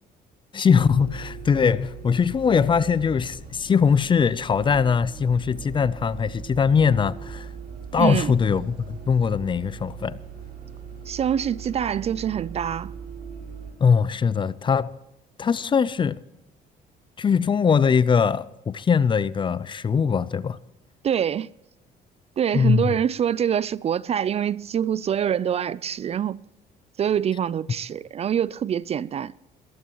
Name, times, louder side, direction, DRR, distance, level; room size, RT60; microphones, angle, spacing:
voice 1, 0.5-7.5 7.9-10.2 13.8-14.9 15.4-16.2 17.2-20.6 22.5-23.0, left 6 dB, 30° left, 0.5 m, -21 dB
Bus, 0.8-13.7, right 6 dB, 70° right, 6.5 m, -40 dB
voice 2, 8.0-8.3 11.1-12.9 21.0-21.5 22.4-26.4 27.0-29.3, right 9 dB, 40° right, 0.4 m, -25 dB
21.5 x 14.5 x 3.0 m
cardioid pair, 110°, 17 cm